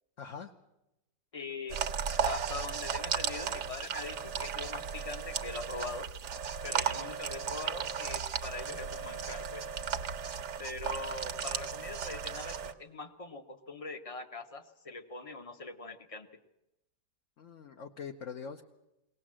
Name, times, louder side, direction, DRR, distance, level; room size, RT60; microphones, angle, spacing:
voice 1, 0.2-0.5 17.4-18.6, left 6 dB, 55° left, 3 dB, 1.2 m, -43 dB
voice 2, 1.3-1.8 2.2-6.1 6.6-9.7 10.6-16.3, left 3 dB, 25° left, 8 dB, 0.9 m, -42 dB
sound 1, 1.7-12.7, right 7 dB, 80° right, 1.6 m, -35 dB
22.0 x 18.5 x 7.5 m, 0.93 s
omnidirectional pair, 1.8 m